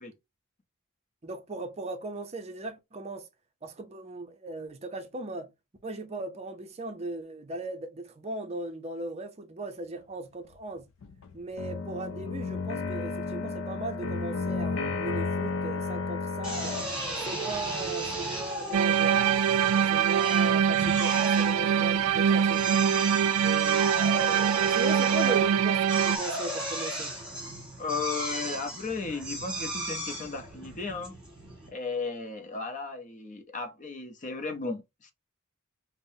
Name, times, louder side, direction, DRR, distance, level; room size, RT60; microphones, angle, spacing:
voice 1, 1.2-3.3 3.6-5.5 5.8-10.9 11.3-16.8 17.2-19.2 19.9-22.9 23.4-24.0 24.7-27.2, right 2 dB, 30° right, 0.5 m, -38 dB
sound 1, 10.5-10.6 11.0-16.8, left 4 dB, 65° left, 0.4 m, -32 dB
Drill, 16.4-31.7, right 1 dB, 5° right, 1.7 m, -35 dB
sound 2, 18.7-26.2, right 8 dB, 80° right, 0.3 m, -24 dB
voice 2, 27.8-31.1 31.7-35.1, left 4 dB, 35° left, 0.7 m, -35 dB
5.2 x 2.1 x 2.6 m
head